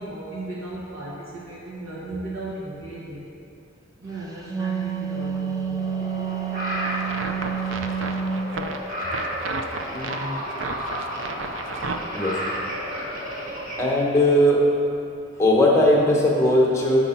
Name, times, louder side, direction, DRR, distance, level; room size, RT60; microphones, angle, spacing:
voice 1, 0.0-3.2 4.0-5.9, right 2 dB, 85° right, -7 dB, 1.7 m, -36 dB
Wind instrument woodwind instrument, 4.3-8.5, right 7 dB, 15° right, 0.4 m, -29 dB
sound 1, 5.8-13.8, equal, 40° right, 1.7 m, -32 dB
sound 2, 6.8-12.0, right 3 dB, 70° right, 0.5 m, -32 dB
voice 2, 9.9-10.3 12.1-12.4 13.8-14.6 15.4-17.0, left 1 dB, 15° left, -3 dB, 1.0 m, -19 dB
7.0 x 4.8 x 5.7 m, 2.6 s
head